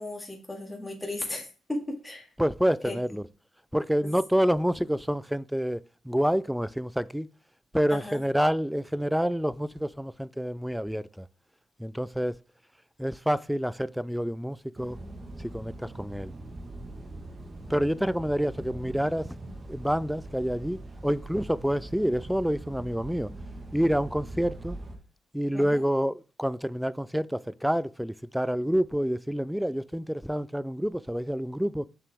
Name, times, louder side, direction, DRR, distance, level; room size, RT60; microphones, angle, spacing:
voice 1, 0.0-2.3 2.8-2.9 4.0-4.1 7.9-8.2 25.5-25.8, left 1 dB, 15° left, 2.2 m, -35 dB
voice 2, 2.4-3.3 3.7-7.3 7.7-11.3 11.8-12.4 13.0-15.0 15.4-16.3 17.7-19.4 19.7-23.3 23.7-24.8 25.3-31.9, equal, 5° right, 0.3 m, -28 dB
sound 1, 14.8-25.0, right 2 dB, 35° right, 1.4 m, -42 dB
6.8 x 5.9 x 3.5 m
cardioid pair, 75°, 0 cm